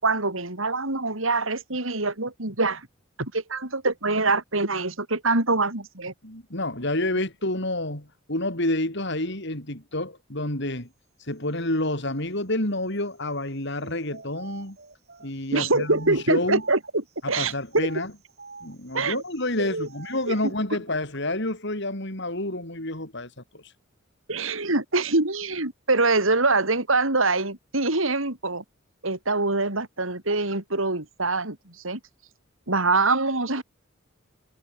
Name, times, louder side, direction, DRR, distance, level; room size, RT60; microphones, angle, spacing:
voice 1, 0.0-2.9 3.2-6.1 15.5-17.5 18.9-19.2 19.6-19.9 20.3-20.4 24.3-28.6 29.0-32.0 32.7-33.6, right 3 dB, 80° right, 4.3 m, -24 dB
voice 2, 6.2-10.9 11.3-14.8 15.2-16.6 17.2-18.1 18.6-23.6, left 1 dB, 60° left, 6.1 m, -29 dB
sound 1, 13.7-17.1 17.6-20.6, right 4 dB, 55° right, 7.7 m, -47 dB
head